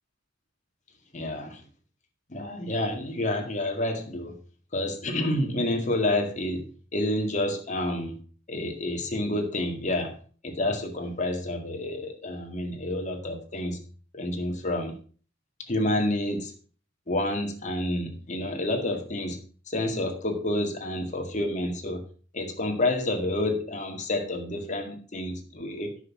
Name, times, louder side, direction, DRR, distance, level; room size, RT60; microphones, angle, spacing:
voice 1, 1.1-1.6 2.3-4.4 4.7-6.7 6.9-8.2 8.5-10.1 10.4-13.8 14.1-15.0 15.7-16.5 17.1-19.4 19.7-22.0 22.3-26.0, left 1 dB, 40° left, 2.0 m, -29 dB
9.5 x 6.5 x 5.9 m
head